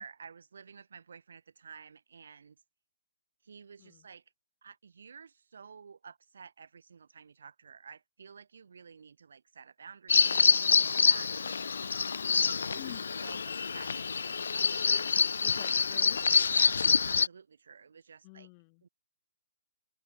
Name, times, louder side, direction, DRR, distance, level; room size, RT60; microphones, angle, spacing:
voice 1, 0.0-2.6 3.4-4.2 4.6-12.1 12.3-12.8 13.2-15.1 16.5-18.5 18.8-18.9, right 6 dB, 65° right, 3.7 m, -51 dB
Bird vocalization bird call bird song, 10.1-17.3, left 5 dB, 75° left, 0.4 m, -26 dB
voice 2, 12.8-13.1 15.4-16.2 18.2-18.8, left 33 dB, 20° left, 4.4 m, -49 dB
open air
hypercardioid pair, 175°, 0 cm